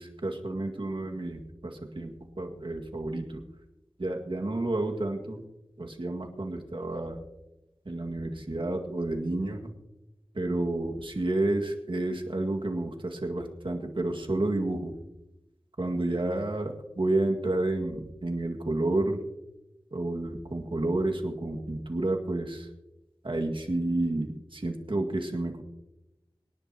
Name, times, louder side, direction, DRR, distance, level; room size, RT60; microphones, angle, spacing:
voice 1, 0.0-3.4 4.0-5.4 5.8-7.2 7.9-9.7 10.3-15.0 15.8-19.2 19.9-22.7 23.2-25.6, right 2 dB, 60° right, 2 dB, 2.0 m, -30 dB
25.0 x 11.0 x 2.9 m, 0.96 s
wide cardioid pair, 45°, 10 cm